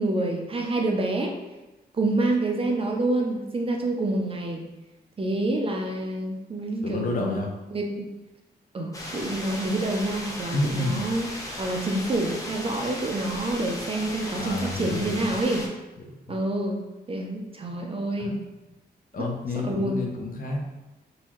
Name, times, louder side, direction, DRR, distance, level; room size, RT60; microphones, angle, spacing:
voice 1, 0.0-1.3 1.9-4.7 5.2-8.1 8.7-11.3 11.6-15.7 16.3-16.8 17.1-18.4 19.6-20.0, right 2 dB, 35° right, 1 dB, 0.5 m, -27 dB
voice 2, 6.8-7.5 10.5-11.2 14.4-15.4 16.1-16.4 18.2-18.3 19.1-20.6, left 2 dB, 55° left, 0 dB, 0.7 m, -29 dB
sound 1, 8.9-15.7, left 1 dB, 20° left, 0.7 m, -36 dB
3.9 x 2.7 x 3.0 m, 1.1 s
wide cardioid pair, 125°, 17 cm